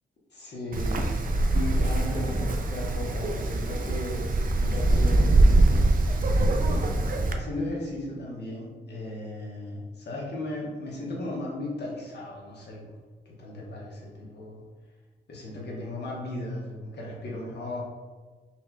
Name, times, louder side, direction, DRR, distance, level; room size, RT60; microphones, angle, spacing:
voice 1, 0.3-1.0 1.7-4.2 4.5-5.3 7.3-12.8 13.2-14.6 15.3-17.8, left 2 dB, 65° left, -4 dB, 1.1 m, -36 dB
Wind, 0.7-7.3, right 2 dB, 50° right, 0.4 m, -23 dB
Guitar, 1.6-4.8, left 2 dB, 35° left, 1.2 m, -41 dB
4.2 x 2.9 x 2.3 m, 1.4 s
cardioid pair, 80°, 19 cm